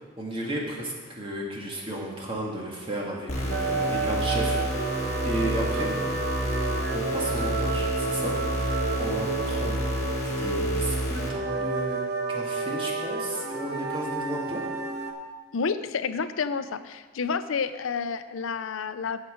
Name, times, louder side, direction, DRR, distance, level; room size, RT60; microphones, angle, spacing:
voice 1, 0.0-5.9 6.9-9.8 10.2-12.0 12.3-14.6, right 1 dB, 25° right, -2 dB, 1.8 m, -34 dB
sound 1, 3.3-11.3, equal, 35° left, 1.7 m, -30 dB
sound 2, 3.5-15.1, right 4 dB, 50° right, 1.0 m, -30 dB
voice 2, 15.5-19.2, left 5 dB, 80° left, 12 dB, 0.5 m, -29 dB
10.5 x 7.4 x 5.0 m, 1.4 s
head